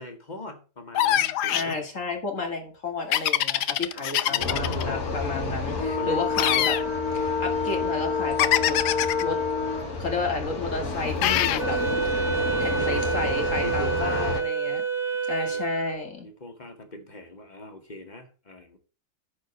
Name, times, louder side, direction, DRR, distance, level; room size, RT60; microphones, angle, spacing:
voice 1, 0.0-1.8 3.9-5.1 5.7-6.2 12.3-13.1 13.6-14.8 15.5-15.6 16.2-18.8, left 2 dB, 25° left, 4 dB, 2.1 m, -39 dB
sound 1, 0.9-1.7 3.1-4.8 6.3-6.8 8.4-9.2 11.2-11.6, left 12 dB, 90° left, 1.3 m, -23 dB
voice 2, 1.5-6.8 7.1-8.8 9.2-9.4 10.0-11.8 12.0-12.3 12.6-14.8 15.3-16.3, left 3 dB, 50° left, 3 dB, 2.5 m, -32 dB
sound 2, 4.4-14.4, left 4 dB, 70° left, 2.7 m, -29 dB
Wind instrument woodwind instrument, 11.6-16.1, right 6 dB, 35° right, 0.9 m, -28 dB
9.9 x 4.6 x 7.1 m, 0.36 s
omnidirectional pair, 1.7 m